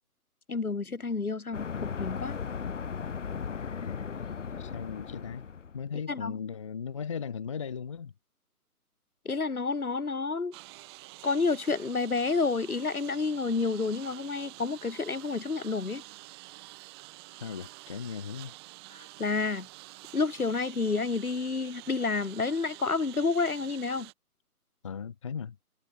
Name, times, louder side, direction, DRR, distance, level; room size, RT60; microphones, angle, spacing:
voice 1, 0.5-2.4 6.1-6.4 9.3-10.6 11.2-16.0 18.9-19.7 20.1-24.1, left 4 dB, 70° left, 3.6 m, -30 dB
sound 1, 1.5-5.8, left 6 dB, 50° left, 1.3 m, -36 dB
voice 2, 4.6-5.4 5.7-8.1 17.4-18.5 24.8-25.6, left 6 dB, 20° left, 0.9 m, -37 dB
Engine, 10.5-24.1, right 23 dB, 15° right, 2.6 m, -48 dB
figure-of-eight pair, 145°, 45 cm